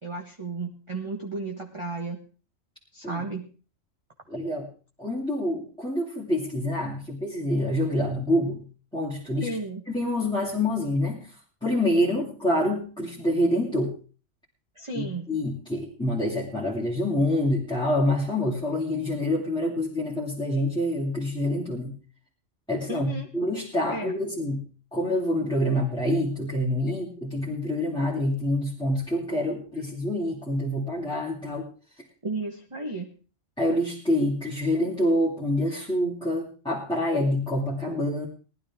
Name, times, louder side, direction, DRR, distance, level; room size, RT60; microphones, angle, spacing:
voice 1, 0.0-2.2 2.9-3.5 9.4-9.8 14.7-15.3 22.9-23.3 23.9-24.1 32.2-33.1, right 3 dB, 25° right, 1 dB, 1.4 m, -33 dB
voice 2, 4.3-4.7 5.0-8.6 8.9-9.6 9.9-11.3 11.6-13.9 14.9-21.9 22.7-24.6 24.9-31.7 33.6-38.3, left 1 dB, 5° left, -5 dB, 2.6 m, -26 dB
18.5 x 12.0 x 3.6 m, 0.37 s
omnidirectional pair, 1.4 m